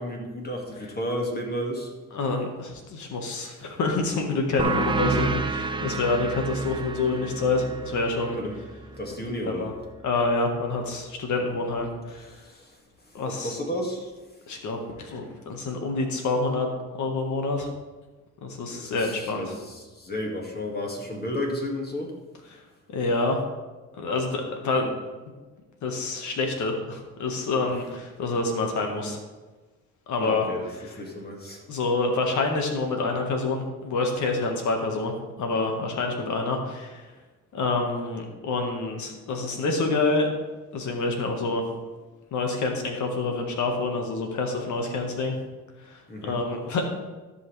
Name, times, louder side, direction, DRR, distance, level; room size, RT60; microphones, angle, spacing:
voice 1, 0.0-1.9 8.3-8.5 9.0-9.7 12.3-12.8 13.3-14.1 18.7-22.1 30.2-30.7 30.9-31.6 46.1-46.4, left 1 dB, 30° left, 0 dB, 2.1 m, -32 dB
voice 2, 2.1-8.4 9.5-9.7 10.0-12.3 13.1-13.6 14.5-16.7 17.0-17.7 18.4-19.5 22.5-22.6 22.9-23.4 24.0-24.9 25.8-29.2 30.1-30.4 31.7-37.0 37.5-40.3 40.7-41.6 42.3-45.4 45.8-46.9, left 3 dB, 75° left, 3 dB, 1.6 m, -27 dB
sound 1, 4.6-9.8, right 3 dB, 15° right, 0.6 m, -30 dB
14.0 x 5.6 x 3.3 m, 1.2 s
cardioid pair, 90°, 30 cm